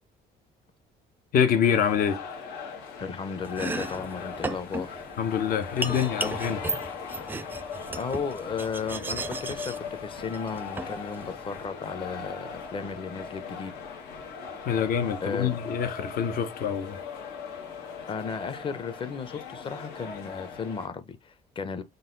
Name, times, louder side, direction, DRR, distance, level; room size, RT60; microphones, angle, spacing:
voice 1, 1.3-2.2 5.2-6.6 14.7-17.0, left 8 dB, 60° left, 0.8 m, -25 dB
sound 1, 1.6-20.9, left 5 dB, 90° left, 1.3 m, -39 dB
voice 2, 3.0-5.0 7.9-13.7 15.2-15.6 18.1-21.8, left 5 dB, 30° left, 0.7 m, -34 dB
Domestic sounds home sounds, 3.4-11.6, right 2 dB, 10° right, 0.4 m, -36 dB
3.9 x 2.3 x 3.9 m
cardioid pair, 110°, 17 cm